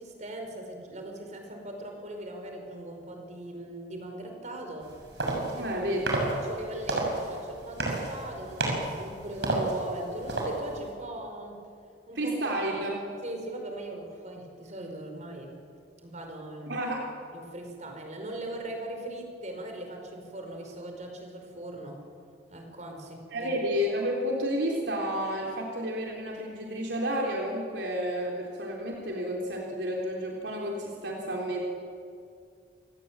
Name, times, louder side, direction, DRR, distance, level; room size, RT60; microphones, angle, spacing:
voice 1, 0.0-4.9 5.5-5.8 6.1-11.6 12.1-12.3 13.2-15.5 16.0-16.7 17.3-22.0 22.5-23.6, right 1 dB, 45° right, 3 dB, 5.1 m, -39 dB
sound 1, 4.8-10.9, right 2 dB, 75° right, 6.9 m, -32 dB
voice 2, 5.5-6.2 12.2-13.0 16.7-17.0 23.3-31.7, equal, 90° right, -1 dB, 3.6 m, -31 dB
28.5 x 17.5 x 9.0 m, 2.3 s
head